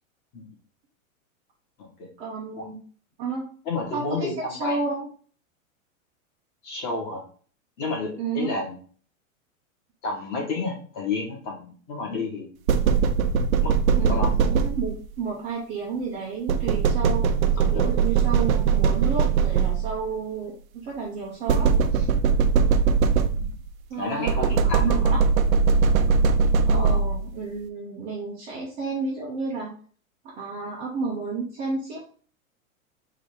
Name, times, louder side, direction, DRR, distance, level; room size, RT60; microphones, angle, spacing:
voice 1, 2.2-2.8 3.2-3.5 3.9-5.1 8.2-8.5 14.0-17.3 17.7-20.6 20.8-22.1 23.9-25.2 26.7-29.7 30.2-32.0, right 4 dB, 15° right, -4 dB, 0.6 m, -31 dB
voice 2, 3.6-4.8 6.6-7.2 7.8-8.8 10.0-12.5 13.6-13.7 14.0-14.3 17.6-17.9 23.4-23.5 23.9-25.2 26.7-27.1, left 3 dB, 25° left, -1 dB, 1.5 m, -31 dB
sound 1, 12.7-15.1 16.5-20.1 21.5-23.7 24.3-27.3, right 6 dB, 80° right, 0.7 m, -21 dB
3.9 x 2.7 x 4.8 m, 0.43 s
supercardioid pair, 165°, 41 cm